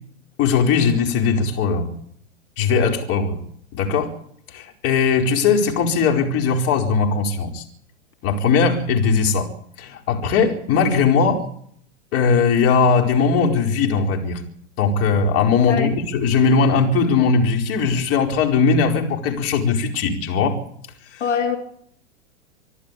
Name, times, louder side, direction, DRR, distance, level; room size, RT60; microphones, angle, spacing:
voice 1, 0.4-1.9 2.6-3.4 3.7-4.1 4.5-7.6 8.2-9.5 9.8-11.4 12.1-14.4 14.8-20.6 21.1-21.2, left 5 dB, 40° left, 2 dB, 4.6 m, -19 dB
voice 2, 21.2-21.6, left 7 dB, 75° left, 4 dB, 3.0 m, -22 dB
25.5 x 12.5 x 8.5 m, 0.67 s
hypercardioid pair, 110°, 36 cm